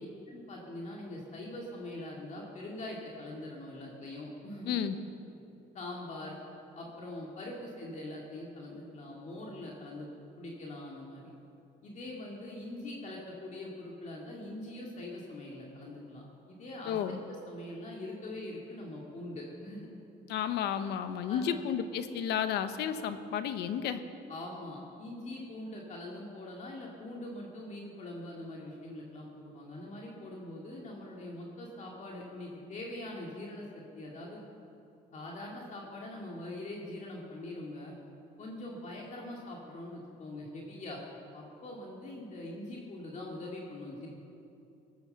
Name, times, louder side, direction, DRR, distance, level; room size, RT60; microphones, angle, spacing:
voice 1, 0.3-4.7 5.7-6.4 6.7-10.1 10.4-11.3 11.8-17.0 17.3-19.9 21.3-21.6 24.3-33.7 34.0-34.4 35.1-37.9 38.4-41.0 41.3-44.1, left 1 dB, 45° left, -2 dB, 2.2 m, -43 dB
voice 2, 4.7-5.0 16.9-17.2 20.3-24.0, left 8 dB, 80° left, 10 dB, 0.9 m, -32 dB
18.0 x 9.2 x 6.9 m, 2.7 s
cardioid pair, 110°, 17 cm